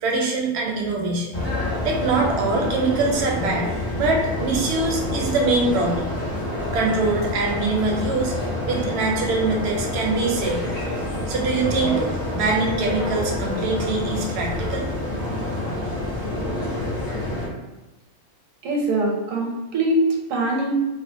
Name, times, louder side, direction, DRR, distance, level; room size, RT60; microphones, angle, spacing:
voice 1, 0.0-1.4 1.8-6.1 6.7-8.3 8.7-10.8 11.3-12.0 12.3-14.9, right 3 dB, 65° right, 1 dB, 0.7 m, -23 dB
sound 1, 1.3-17.5, left 1 dB, 45° left, 0.9 m, -27 dB
voice 2, 18.6-20.7, right 1 dB, 80° right, -1 dB, 1.0 m, -22 dB
2.4 x 2.4 x 2.5 m, 1.1 s
omnidirectional pair, 1.4 m